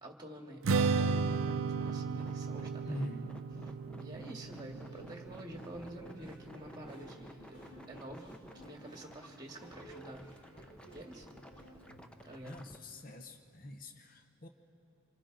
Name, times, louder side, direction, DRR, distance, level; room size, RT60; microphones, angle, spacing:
voice 1, 0.0-3.1 4.0-7.6 7.9-10.3 10.9-11.4 12.2-12.6, right 1 dB, 20° right, 1 dB, 2.0 m, -48 dB
Strum, 0.6-6.9, right 4 dB, 85° right, 0.5 m, -34 dB
sound 1, 1.1-12.8, equal, 5° left, 0.6 m, -53 dB
sound 2, 2.2-12.5, right 1 dB, 60° left, 6.2 m, -56 dB
voice 2, 2.8-3.3 12.4-14.5, left 1 dB, 45° left, 6 dB, 0.9 m, -44 dB
28.0 x 26.0 x 4.0 m, 2.7 s
head